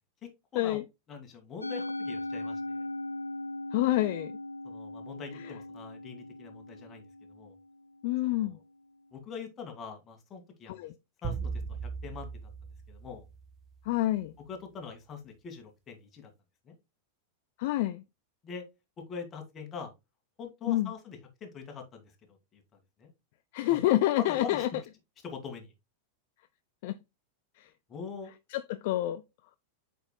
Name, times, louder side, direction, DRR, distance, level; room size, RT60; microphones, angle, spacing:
voice 1, 0.2-0.8 1.1-2.9 4.6-7.5 8.2-8.6 9.1-10.8 11.2-12.3 12.9-13.3 14.5-16.3 16.7-16.8 18.4-18.6 19.0-19.9 20.4-22.6 23.0-23.1 23.7-23.9 24.2-24.7 25.2-25.7 27.9-28.3, left 6 dB, 25° left, 2.1 m, -43 dB
Musical instrument, 1.6-8.0, left 1 dB, 85° left, 0.7 m, -39 dB
voice 2, 3.7-4.3 8.0-8.6 10.7-10.9 13.9-14.3 17.6-18.0 20.7-20.9 23.5-24.7 26.8-27.0 27.6-27.7 28.5-29.2, left 15 dB, 50° left, 0.4 m, -27 dB
sound 1, 11.2-13.7, right 5 dB, 25° right, 1.2 m, -38 dB
7.8 x 5.5 x 2.2 m
figure-of-eight pair, 90°, 0 cm